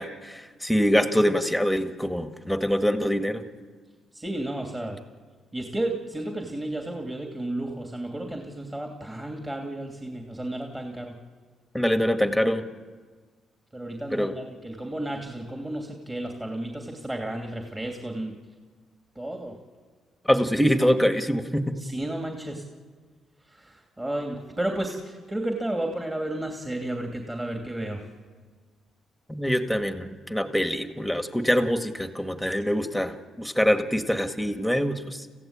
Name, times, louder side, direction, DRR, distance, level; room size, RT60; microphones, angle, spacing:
voice 1, 0.0-3.4 11.7-12.6 14.1-14.3 20.3-21.8 29.3-35.3, equal, ahead, 7 dB, 1.8 m, -24 dB
voice 2, 4.1-5.0 5.5-11.1 13.7-18.3 19.1-19.5 21.8-22.6 23.5-28.0, right 1 dB, 15° right, 2 dB, 2.8 m, -32 dB
28.0 x 15.5 x 8.9 m, 1.5 s
cardioid pair, 90°, 0 cm